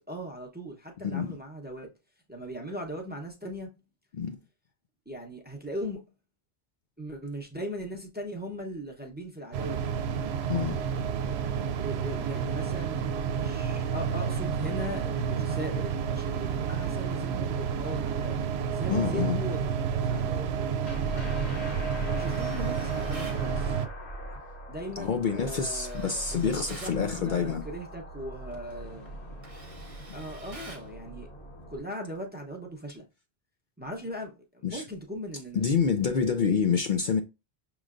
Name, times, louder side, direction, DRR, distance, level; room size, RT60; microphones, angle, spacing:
voice 1, 0.0-1.9 2.3-3.7 5.1-6.1 7.0-9.9 11.7-13.0 13.3-18.4 18.7-20.9 21.1-21.5 22.1-23.8 24.7-29.1 30.1-31.3 31.7-33.0 33.8-36.0, equal, 10° right, 0.8 m, -39 dB
sound 1, 9.5-23.9, right 7 dB, 80° right, 0.8 m, -30 dB
voice 2, 18.9-19.4 25.0-27.7 34.6-34.8 35.5-37.2, left 6 dB, 55° left, 0.6 m, -27 dB
sound 2, 20.8-31.8, right 1 dB, 80° left, 1.5 m, -40 dB
Tools, 22.2-23.4 25.6-27.0 28.5-28.7 29.1-30.9, right 2 dB, 35° right, 1.0 m, -48 dB
6.3 x 3.0 x 2.5 m
omnidirectional pair, 1.1 m